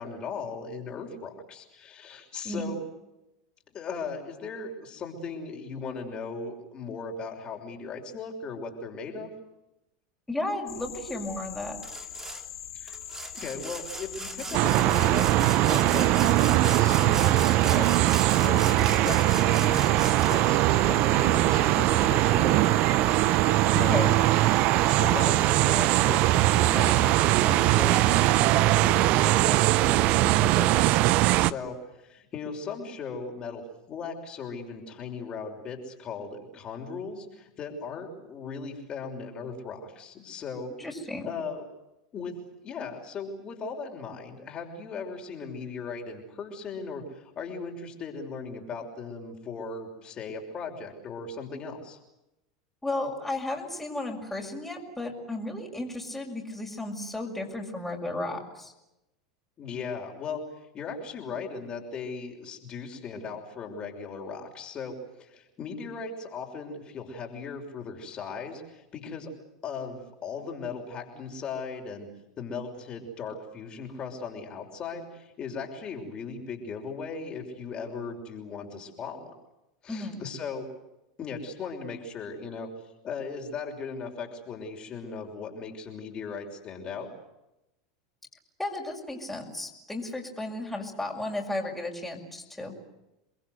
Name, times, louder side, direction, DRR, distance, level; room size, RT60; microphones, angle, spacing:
voice 1, 0.0-2.8 3.7-9.3 12.7-24.1 24.9-33.6 33.9-40.7 41.2-41.6 42.1-42.4 42.6-52.0 59.6-69.3 69.6-72.1 72.4-79.3 79.8-80.7 81.2-87.1, left 5 dB, 35° left, 1 dB, 6.0 m, -38 dB
voice 2, 10.3-11.8 23.9-24.1 40.8-41.3 52.8-58.7 79.9-80.2 88.6-92.8, left 2 dB, 5° left, 0 dB, 6.6 m, -34 dB
sound 1, 10.7-29.4, left 9 dB, 85° left, 5.9 m, -42 dB
Sawing, 11.8-12.4 12.9-20.6, right 4 dB, 20° right, 3.2 m, -38 dB
sound 2, 14.5-31.5, right 17 dB, 55° right, 0.9 m, -21 dB
29.5 x 22.0 x 8.1 m, 0.92 s
hypercardioid pair, 95°, 3 cm